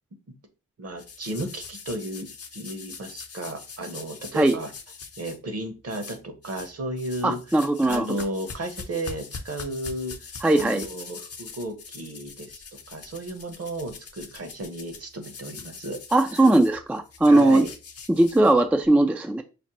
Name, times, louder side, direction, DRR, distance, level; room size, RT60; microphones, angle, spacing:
voice 1, 0.8-4.7 5.2-10.2 10.6-16.0 16.3-16.4 17.3-17.7, right 1 dB, 50° right, 7 dB, 1.0 m, -34 dB
sound 1, 1.0-5.4 5.9-6.7 7.0-18.9, left 5 dB, 45° left, 0.7 m, -42 dB
voice 2, 7.2-8.1 10.4-10.9 16.1-17.7 18.1-19.4, right 2 dB, 5° right, 7 dB, 0.3 m, -19 dB
5.1 x 2.1 x 3.0 m, 0.32 s
cardioid pair, 60°, 32 cm